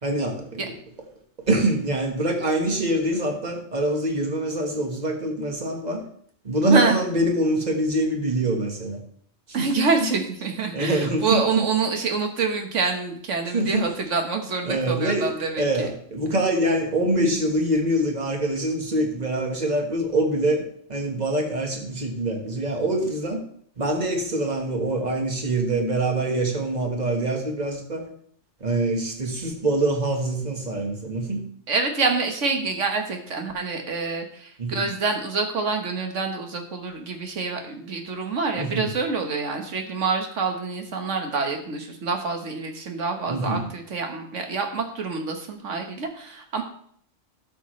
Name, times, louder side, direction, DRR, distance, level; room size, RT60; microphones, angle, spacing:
voice 1, 0.0-0.7 1.5-6.0 6.4-9.0 9.5-10.1 10.7-11.7 13.5-13.9 14.6-23.4 23.8-28.1 28.6-31.4 34.6-34.8 38.6-38.9 43.3-43.7, right 1 dB, 35° right, 2 dB, 1.5 m, -25 dB
voice 2, 6.7-7.0 9.5-15.9 31.7-46.6, right 4 dB, 80° right, 4 dB, 1.6 m, -26 dB
12.0 x 6.7 x 3.1 m, 0.62 s
omnidirectional pair, 1.3 m